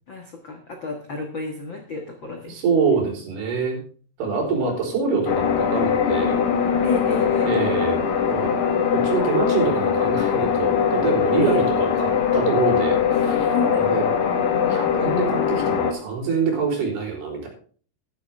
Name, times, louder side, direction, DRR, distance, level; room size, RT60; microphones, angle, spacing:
voice 1, 0.1-2.6 6.8-7.5 11.4-11.6 13.5-13.9, left 4 dB, 85° left, 3 dB, 1.0 m, -30 dB
voice 2, 2.5-3.8 4.2-6.4 7.5-8.0 8.3-8.5 9.0-14.0 14.7-17.5, right 5 dB, 65° right, 1 dB, 5.6 m, -25 dB
sound 1, 5.3-15.9, left 7 dB, 60° left, 2.2 m, -21 dB
12.0 x 11.5 x 3.5 m, 0.43 s
omnidirectional pair, 4.9 m